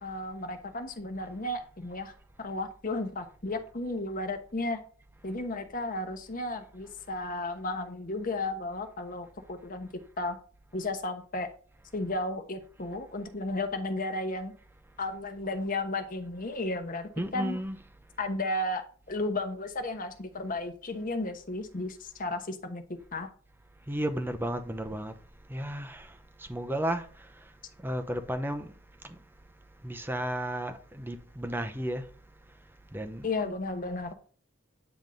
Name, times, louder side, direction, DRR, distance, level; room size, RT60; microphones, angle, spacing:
voice 1, 0.0-2.1 2.4-4.8 5.2-9.9 10.2-10.4 10.7-11.5 11.9-14.5 15.0-17.6 18.2-23.3 33.2-34.1, left 2 dB, 40° left, 1.0 m, -34 dB
voice 2, 17.2-17.8 23.9-25.1 25.5-26.1 26.4-27.1 27.8-28.7 29.0-29.2 29.8-32.1 32.9-33.3, right 1 dB, 10° right, 0.7 m, -33 dB
9.0 x 3.5 x 3.8 m
head